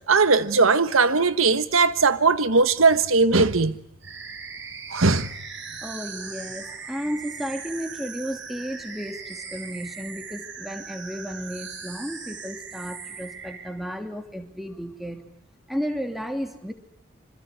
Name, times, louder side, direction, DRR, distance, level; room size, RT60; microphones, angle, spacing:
voice 1, 0.1-3.8 4.9-5.3, right 4 dB, 85° right, 1.4 m, -19 dB
sound 1, 4.0-13.7, right 5 dB, 60° right, 6.1 m, -39 dB
voice 2, 5.8-15.2 15.7-16.7, equal, ahead, 2.8 m, -33 dB
27.0 x 26.5 x 8.1 m
head